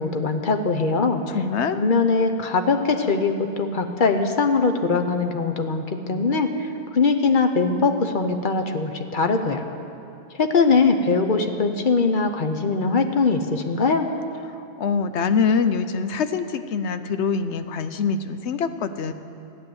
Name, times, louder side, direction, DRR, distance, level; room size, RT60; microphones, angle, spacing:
voice 1, 0.0-1.2 1.7-9.7 10.4-14.1, left 4 dB, 50° left, 6 dB, 1.0 m, -21 dB
voice 2, 1.3-1.8 14.8-19.1, left 5 dB, 80° left, 10 dB, 1.0 m, -24 dB
14.0 x 10.0 x 7.8 m, 2.6 s
omnidirectional pair, 1.1 m